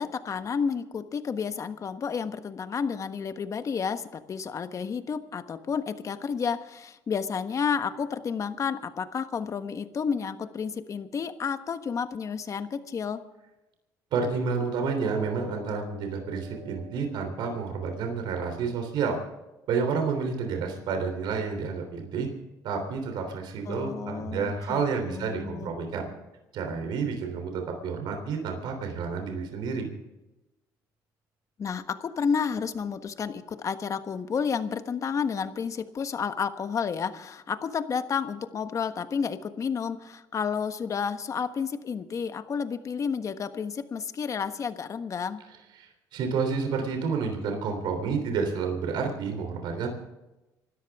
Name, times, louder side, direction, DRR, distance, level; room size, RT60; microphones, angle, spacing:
voice 1, 0.0-13.2 23.7-25.7 31.6-45.4, left 6 dB, 45° left, 9 dB, 1.4 m, -31 dB
voice 2, 14.1-19.2 19.7-22.3 22.6-26.1 26.5-29.9 45.8-49.9, right 5 dB, 75° right, 4 dB, 3.4 m, -30 dB
sound 1, 14.9-20.9 21.3-21.5 22.0-22.1, equal, 45° right, 7.9 m, -49 dB
26.0 x 13.5 x 3.6 m, 1.0 s
cardioid pair, 90°, 8 cm